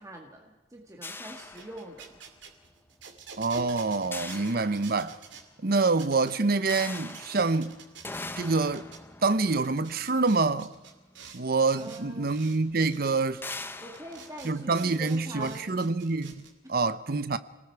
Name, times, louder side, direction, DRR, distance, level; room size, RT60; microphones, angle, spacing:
voice 1, 0.0-2.1 4.3-4.5 11.8-12.3 13.8-15.8, right 1 dB, 20° right, 2.0 m, -44 dB
sound 1, 1.0-2.4 4.1-5.4 6.7-11.1 12.1-12.2 12.5-12.7 13.4-15.4, left 3 dB, 10° left, 0.7 m, -43 dB
sound 2, 1.4-5.4 5.9-6.3 6.6-9.0 9.4-11.4 11.7-12.6 12.9-13.1 13.5-13.6 13.9-16.5, right 5 dB, 75° right, 2.6 m, -48 dB
voice 2, 3.4-5.2 5.6-7.8 8.4-8.9 9.2-10.7 11.3-13.4 14.4-17.4, right 3 dB, 55° right, 0.8 m, -26 dB
28.0 x 19.5 x 4.8 m
head